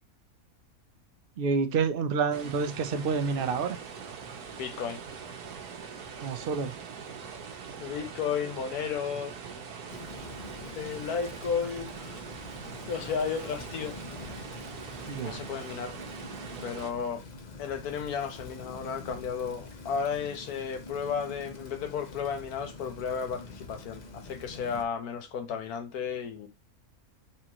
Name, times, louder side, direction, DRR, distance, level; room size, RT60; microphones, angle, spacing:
voice 1, 1.4-3.8 6.2-6.7 15.1-15.4, right 5 dB, 60° right, 0.6 m, -28 dB
sound 1, 2.3-16.9, right 6 dB, 90° right, 1.3 m, -43 dB
voice 2, 4.6-5.0 7.8-9.3 10.7-12.2 12.9-14.0 15.2-16.0 16.6-17.2 17.6-26.5, left 6 dB, 90° left, 1.4 m, -33 dB
Rain, 9.9-24.8, left 3 dB, 40° left, 0.7 m, -45 dB
4.3 x 3.7 x 2.9 m
omnidirectional pair, 1.6 m